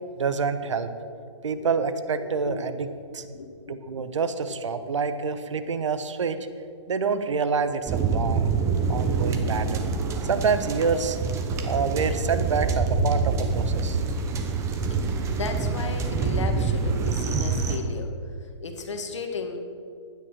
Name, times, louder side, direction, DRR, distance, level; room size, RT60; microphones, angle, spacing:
voice 1, 0.2-0.9 1.4-2.9 3.1-3.2 3.7-6.5 6.9-8.5 8.9-9.9 10.2-11.2 11.6-14.0, right 5 dB, 75° right, 10 dB, 1.1 m, -27 dB
voice 2, 2.2-2.7 3.3-3.8 15.4-18.1 18.6-19.6, left 4 dB, 70° left, 5 dB, 2.0 m, -35 dB
sound 1, 7.9-17.8, right 4 dB, 20° right, 1.1 m, -26 dB
11.5 x 9.7 x 6.0 m, 2.4 s
hypercardioid pair, 135°, 16 cm